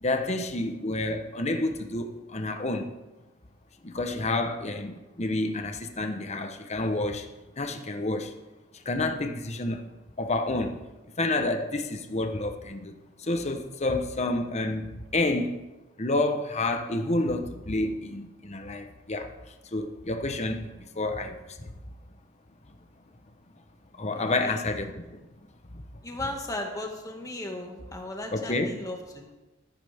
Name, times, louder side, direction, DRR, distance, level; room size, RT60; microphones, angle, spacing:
voice 1, 0.0-2.9 3.8-7.3 7.6-8.3 8.8-9.9 10.2-10.8 11.2-15.6 16.0-19.3 19.7-21.7 24.0-25.2 25.7-25.8 28.3-28.8, left 2 dB, 35° left, 1.0 m, -29 dB
voice 2, 26.0-29.3, left 1 dB, 15° left, 2.0 m, -36 dB
15.0 x 13.0 x 3.6 m
head